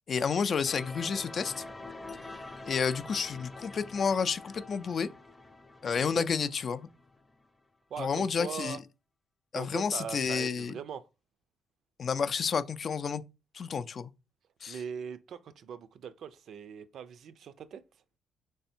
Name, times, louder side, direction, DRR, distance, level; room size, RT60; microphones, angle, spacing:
voice 1, 0.1-1.6 2.7-5.1 5.8-6.9 8.0-8.8 9.5-10.7 12.0-13.2 13.5-14.1 14.6-14.8, left 6 dB, 50° left, 0.4 m, -30 dB
sound 1, 0.7-7.4, left 2 dB, 15° left, 0.6 m, -46 dB
voice 2, 5.9-6.3 7.9-8.8 9.5-11.1 14.7-17.8, right 7 dB, 65° right, 0.4 m, -41 dB
3.4 x 3.4 x 4.3 m
cardioid pair, 90°, 0 cm